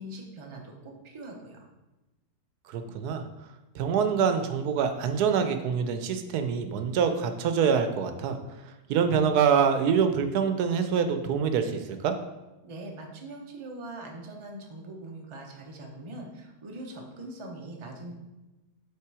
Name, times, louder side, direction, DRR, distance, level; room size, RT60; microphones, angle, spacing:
voice 1, 0.0-1.7 12.6-18.1, right 1 dB, 25° right, 1 dB, 0.6 m, -42 dB
voice 2, 2.7-3.2 3.7-8.4 8.9-12.2, right 7 dB, 85° right, 8 dB, 1.2 m, -25 dB
5.7 x 4.0 x 4.7 m, 1.0 s
omnidirectional pair, 1.6 m